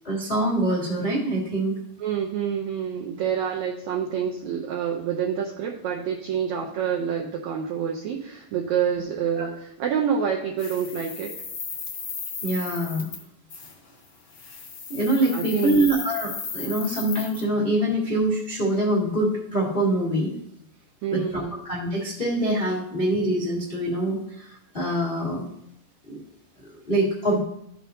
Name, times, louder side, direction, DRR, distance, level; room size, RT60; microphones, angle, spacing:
voice 1, 0.0-1.7 9.4-9.5 12.4-13.1 14.9-20.3 21.1-25.5 26.1-26.2 26.8-27.4, right 1 dB, 50° left, -4 dB, 0.6 m, -24 dB
voice 2, 2.0-11.3 15.3-15.9 21.0-21.6, right 8 dB, 85° right, 0 dB, 1.6 m, -27 dB
sound 1, 10.6-13.2 13.5-13.7 14.3-17.4, left 5 dB, 75° left, 1.1 m, -36 dB
13.0 x 6.0 x 2.7 m, 0.74 s
omnidirectional pair, 4.1 m